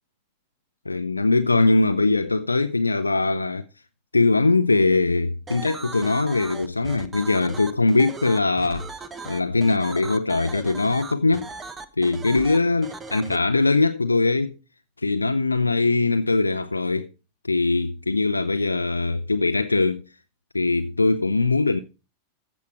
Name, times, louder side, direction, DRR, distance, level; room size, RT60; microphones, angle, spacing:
voice 1, 0.9-3.6 4.1-8.9 9.3-11.5 12.0-14.5 15.0-17.1 17.4-20.0 20.5-21.8, left 3 dB, 80° left, 0.5 m, -21 dB
sound 1, 5.5-13.4, right 4 dB, 15° right, 1.1 m, -38 dB
15.0 x 6.2 x 4.5 m
figure-of-eight pair, 90°, 0 cm